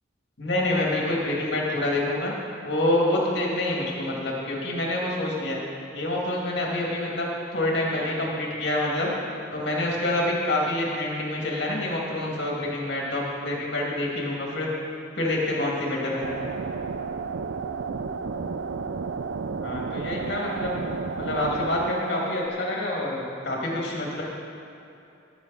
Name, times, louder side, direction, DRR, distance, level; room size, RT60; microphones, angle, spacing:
voice 1, 0.4-2.3 2.6-5.6 5.9-9.1 9.5-14.7 15.1-16.2 19.6-20.8 21.1-24.2, left 1 dB, 55° left, -3 dB, 2.3 m, -27 dB
sound 1, 16.2-22.5, right 5 dB, 65° right, 0.4 m, -32 dB
18.0 x 7.2 x 4.1 m, 2.7 s
head